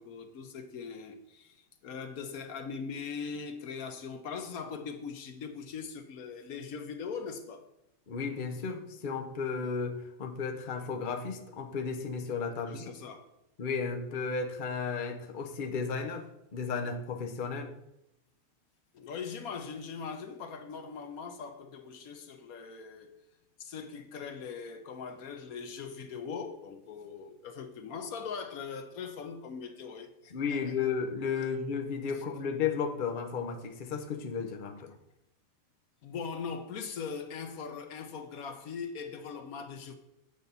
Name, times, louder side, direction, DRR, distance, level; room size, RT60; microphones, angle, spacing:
voice 1, 0.0-7.6 12.6-13.3 18.9-23.1 23.6-30.8 31.4-31.5 36.0-39.9, left 5 dB, 80° left, 1.3 m, -41 dB
voice 2, 8.1-12.9 13.6-16.3 16.5-17.7 30.3-34.9, left 5 dB, 40° left, 0.9 m, -34 dB
8.5 x 4.0 x 6.9 m
omnidirectional pair, 1.5 m